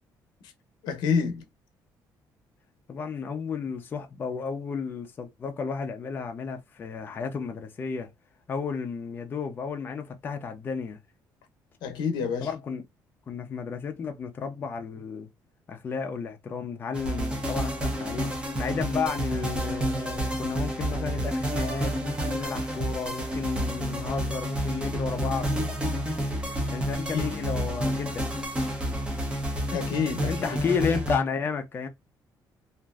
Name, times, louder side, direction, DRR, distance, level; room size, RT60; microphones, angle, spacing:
voice 1, 0.8-1.4 11.8-12.5 27.1-27.2 29.7-30.3, left 6 dB, 90° left, 0.7 m, -27 dB
voice 2, 2.9-8.1 8.5-11.0 12.4-12.8 13.3-15.3 15.7-25.5 26.7-28.3 30.3-31.9, left 5 dB, 30° left, 0.5 m, -32 dB
sound 1, 16.9-31.2, equal, 15° right, 0.7 m, -30 dB
3.0 x 2.5 x 2.3 m
cardioid pair, 160°, 7 cm